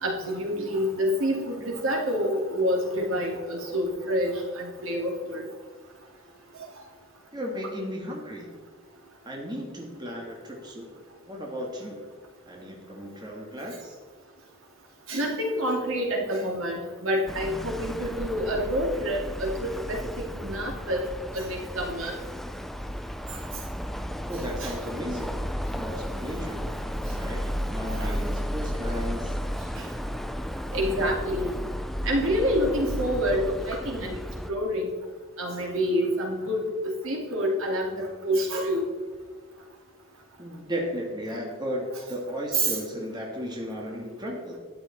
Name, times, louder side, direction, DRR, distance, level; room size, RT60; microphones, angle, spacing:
voice 1, 0.0-5.4 15.1-21.0 21.3-22.1 24.6-24.7 27.9-28.1 29.8-29.9 30.7-31.5 32.0-34.2 34.5-34.9 35.4-38.9 42.5-42.8, equal, 80° right, 0 dB, 2.7 m, -27 dB
voice 2, 7.3-8.6 9.2-11.0 11.3-12.0 12.5-14.0 24.3-26.7 27.1-29.4 40.4-44.6, equal, 20° right, -1 dB, 1.7 m, -35 dB
sound 1, 17.3-34.5, equal, ahead, 0.3 m, -33 dB
12.5 x 10.0 x 4.2 m, 1.5 s
head